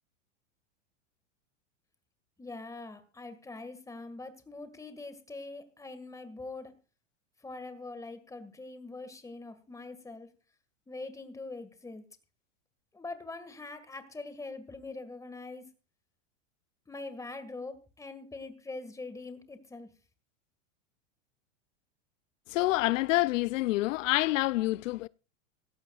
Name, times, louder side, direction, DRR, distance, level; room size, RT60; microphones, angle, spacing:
voice 1, 2.4-6.7 7.4-10.3 10.9-12.0 12.9-15.6 16.9-19.9, left 3 dB, 10° left, 1.8 m, -43 dB
voice 2, 22.5-25.1, left 18 dB, 75° left, 0.5 m, -27 dB
17.0 x 15.0 x 2.4 m
hypercardioid pair, 125°, 38 cm